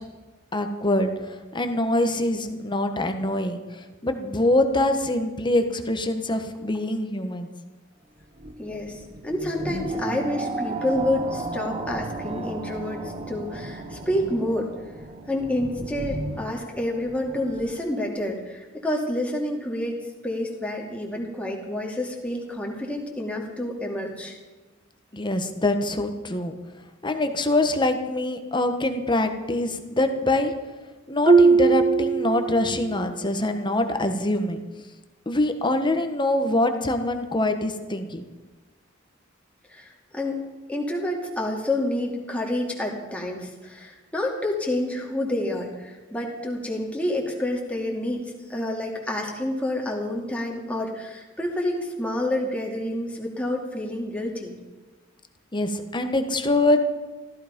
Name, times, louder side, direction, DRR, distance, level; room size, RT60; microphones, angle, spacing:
voice 1, 0.5-7.5 25.1-26.5 27.0-30.5 31.1-34.6 35.3-38.3 55.5-56.8, left 1 dB, 25° left, 7 dB, 1.3 m, -24 dB
sound 1, 8.2-17.8, right 2 dB, 30° right, 1.2 m, -34 dB
voice 2, 8.6-14.7 15.3-24.4 39.7-40.4 40.7-48.2 48.5-54.6, left 1 dB, 5° left, -2 dB, 2.4 m, -28 dB
Marimba xylophone, 31.3-33.0, right 4 dB, 50° right, 1.4 m, -19 dB
15.0 x 14.0 x 5.3 m, 1.2 s
head